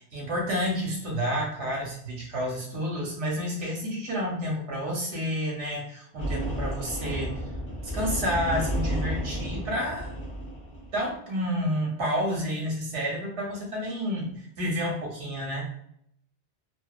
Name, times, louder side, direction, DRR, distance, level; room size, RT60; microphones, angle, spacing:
voice 1, 0.1-7.4 7.9-10.1 10.9-15.7, equal, 85° right, -1 dB, 1.1 m, -30 dB
sound 1, 6.2-11.0, equal, 15° left, 0.7 m, -32 dB
2.7 x 2.1 x 2.3 m, 0.71 s
omnidirectional pair, 1.2 m